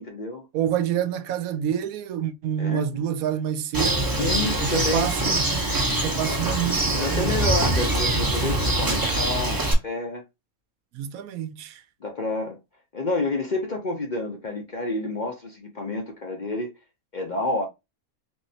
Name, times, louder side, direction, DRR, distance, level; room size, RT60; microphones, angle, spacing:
voice 1, 0.0-0.5 2.6-3.0 4.2-5.1 6.3-6.4 6.9-10.2 12.0-12.6 12.9-16.7 17.1-17.7, left 2 dB, 45° left, 0.6 m, -29 dB
voice 2, 0.5-4.1 4.6-7.4 10.9-11.8, right 10 dB, 80° right, 1.0 m, -28 dB
Bird, 3.7-9.7, right 1 dB, 20° right, 0.6 m, -24 dB
3.6 x 3.1 x 2.7 m
omnidirectional pair, 1.5 m